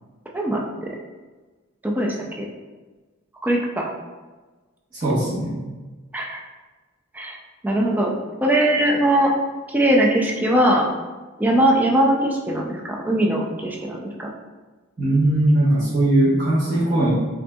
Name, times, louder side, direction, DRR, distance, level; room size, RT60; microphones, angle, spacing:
voice 1, 0.3-1.0 1.8-2.5 3.4-3.9 6.1-6.4 7.1-7.4 7.6-8.1 8.4-9.3 9.7-10.9 11.4-14.3, right 1 dB, 10° right, -1 dB, 0.3 m, -20 dB
voice 2, 4.9-5.6 15.0-17.1, right 1 dB, 40° right, -14 dB, 1.2 m, -19 dB
5.4 x 2.6 x 2.3 m, 1.3 s
head